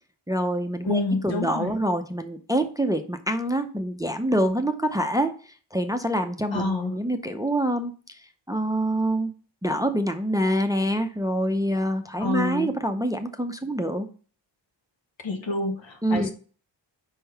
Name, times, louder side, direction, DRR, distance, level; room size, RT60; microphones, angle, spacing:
voice 1, 0.3-5.3 5.7-8.2 8.5-9.3 9.6-14.1 16.0-16.3, right 1 dB, 10° right, 7 dB, 0.5 m, -26 dB
voice 2, 0.8-1.7 6.5-6.9 12.2-12.7 15.2-16.3, left 3 dB, 75° left, 4 dB, 1.4 m, -27 dB
5.4 x 3.7 x 5.7 m, 0.40 s
wide cardioid pair, 100°, 45 cm